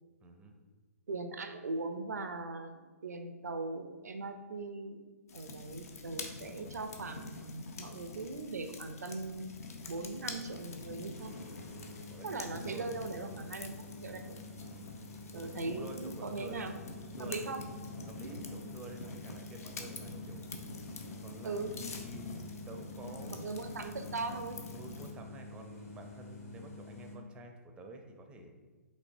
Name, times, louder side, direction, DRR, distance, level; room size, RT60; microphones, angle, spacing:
voice 1, 0.2-0.5 11.8-12.9 13.2-13.4 14.7-15.0 15.3-16.7 17.1-17.5 18.1-22.4 22.7-23.4 24.7-28.6, right 1 dB, 10° right, 4 dB, 0.4 m, -49 dB
voice 2, 1.1-5.0 5.3-9.5 9.9-11.3 12.2-14.4 15.3-16.7 17.2-17.6 21.4-21.7 23.3-24.6, right 3 dB, 85° right, 7 dB, 0.4 m, -40 dB
sound 1, 5.3-25.1, left 3 dB, 70° left, 0.6 m, -46 dB
sound 2, 11.1-27.2, left 2 dB, 90° left, 1.4 m, -49 dB
5.2 x 3.2 x 2.6 m, 1.3 s
hypercardioid pair, 130°, 9 cm